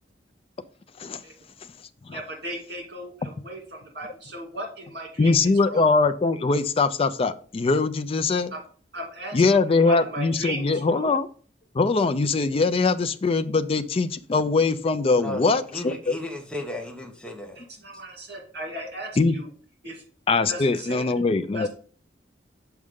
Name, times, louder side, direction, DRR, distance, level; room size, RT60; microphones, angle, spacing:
voice 1, 2.1-5.9 8.5-8.6 8.9-11.1 17.6-19.5 19.8-20.0 20.5-21.0 21.5-21.7, right 1 dB, 60° right, 1 dB, 2.2 m, -37 dB
voice 2, 5.2-8.5 9.3-11.3 11.7-16.2 19.2-19.4 20.3-21.7, left 3 dB, 30° left, 10 dB, 0.4 m, -22 dB
voice 3, 15.2-17.6, left 1 dB, 5° left, 1 dB, 0.8 m, -35 dB
6.4 x 4.6 x 3.6 m, 0.43 s
head